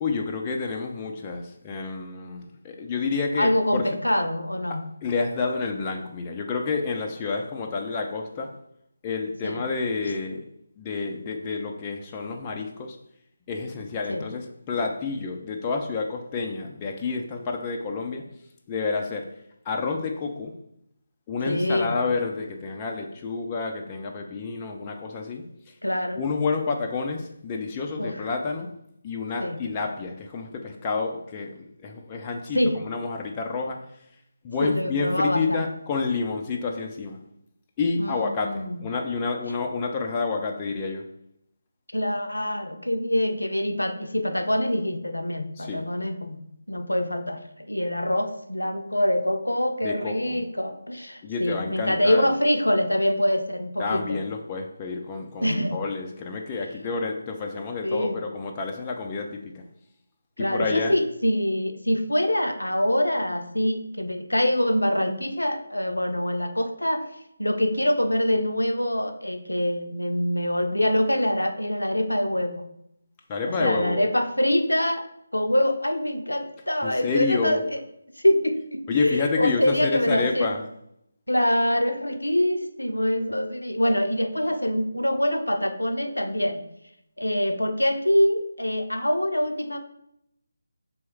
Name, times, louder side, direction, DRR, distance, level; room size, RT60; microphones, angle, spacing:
voice 1, 0.0-3.8 5.0-8.5 9.0-10.4 10.8-13.0 13.5-18.3 18.7-19.3 19.7-20.5 21.3-25.5 26.2-28.7 29.0-31.5 31.8-33.8 34.4-37.2 37.8-41.1 45.6-45.8 49.8-50.4 51.2-52.3 53.8-59.6 60.4-61.0 73.3-74.1 76.8-77.6 78.9-80.6, left 4 dB, 20° left, 1 dB, 0.4 m, -29 dB
voice 2, 3.4-4.9 9.4-9.6 14.1-14.2 21.5-22.0 25.8-26.2 28.0-28.3 29.4-29.6 32.5-32.8 34.6-35.6 38.0-38.8 41.9-46.4 46.7-54.2 55.4-55.7 57.8-58.2 60.4-67.1 67.4-72.6 73.5-75.1 75.3-77.8 78.2-80.5 81.3-86.6 87.2-89.8, left 1 dB, 80° left, 6 dB, 0.5 m, -25 dB
3.4 x 3.1 x 4.5 m, 0.76 s
figure-of-eight pair, 155°, 0 cm